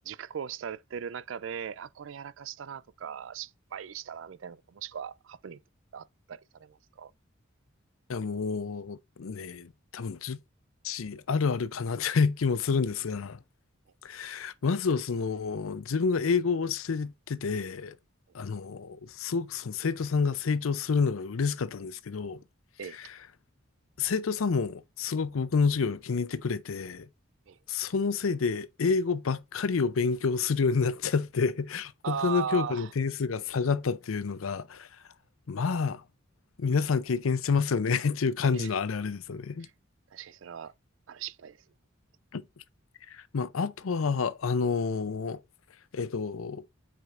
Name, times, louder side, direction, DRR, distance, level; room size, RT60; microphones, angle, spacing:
voice 1, 0.0-5.6 5.9-7.1 22.8-23.0 27.5-27.6 32.0-32.9 38.5-38.7 39.6-39.7 40.1-40.7 41.1-41.6, right 7 dB, 65° right, 0.4 m, -38 dB
voice 2, 8.1-10.4 10.8-13.4 14.0-17.9 18.3-22.4 22.9-23.1 24.0-27.1 27.7-34.9 35.5-36.0 36.6-39.7 42.3-42.4 43.1-45.4 45.9-46.6, left 5 dB, 85° left, 0.5 m, -29 dB
7.6 x 5.0 x 2.5 m
head